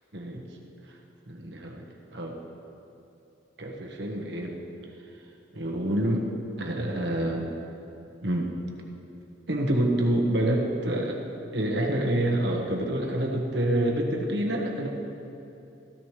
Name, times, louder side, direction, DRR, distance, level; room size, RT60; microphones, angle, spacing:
voice 1, 0.1-0.5 1.3-1.9 2.1-2.4 3.6-4.6 5.5-6.3 6.6-7.5 8.2-8.6 9.5-11.2 11.5-14.9, right 1 dB, 65° right, 0 dB, 1.5 m, -27 dB
15.0 x 14.0 x 3.3 m, 2.8 s
head